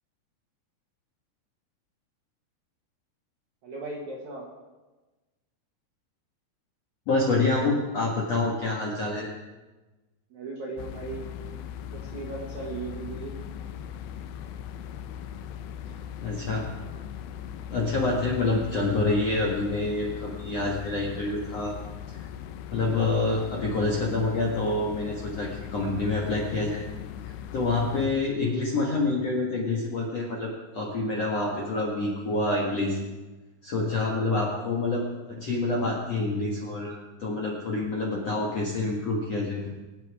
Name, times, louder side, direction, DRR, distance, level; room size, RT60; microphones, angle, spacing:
voice 1, 3.6-4.5 10.3-11.3 11.9-13.3, right 3 dB, 60° right, -2 dB, 2.0 m, -37 dB
voice 2, 7.1-9.3 16.2-16.6 17.7-21.7 22.1-22.3 22.7-26.9 27.5-33.0 33.6-39.7, left 2 dB, 55° left, -3 dB, 1.7 m, -27 dB
sound 1, 10.8-28.1, left 9 dB, 80° left, 2.4 m, -39 dB
23.5 x 9.0 x 4.9 m, 1.2 s
omnidirectional pair, 5.6 m